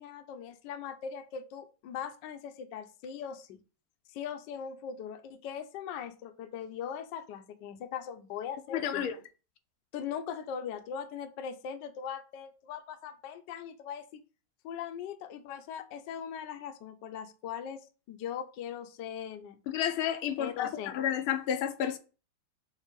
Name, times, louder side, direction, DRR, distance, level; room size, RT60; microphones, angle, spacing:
voice 1, 0.0-3.6 4.1-9.1 9.9-14.0 14.6-19.6 20.4-20.9, left 8 dB, 65° left, 1.3 m, -40 dB
voice 2, 8.7-9.2 19.7-22.0, left 9 dB, 85° left, 1.6 m, -31 dB
5.4 x 3.8 x 5.1 m
omnidirectional pair, 2.3 m